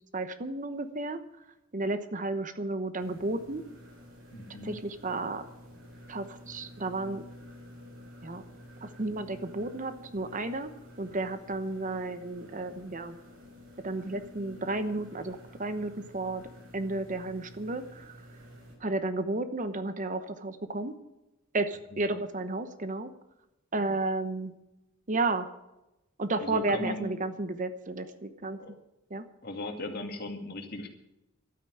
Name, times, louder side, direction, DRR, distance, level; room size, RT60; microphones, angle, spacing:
voice 1, 0.1-1.2 1.7-3.6 4.6-5.4 6.1-7.3 8.2-8.4 8.8-10.7 11.0-13.2 13.8-16.5 16.7-18.2 18.8-20.9 21.5-23.1 23.7-24.5 25.1-25.5 26.2-28.6 29.1-29.2, right 2 dB, 40° right, 10 dB, 1.0 m, -32 dB
sound 1, 3.0-18.7, left 1 dB, 65° right, 5.9 m, -51 dB
voice 2, 4.3-4.8 21.9-22.0 26.4-27.1 28.6-28.7 29.4-30.9, left 1 dB, 50° left, 4 dB, 2.4 m, -37 dB
12.5 x 9.1 x 9.9 m, 0.93 s
head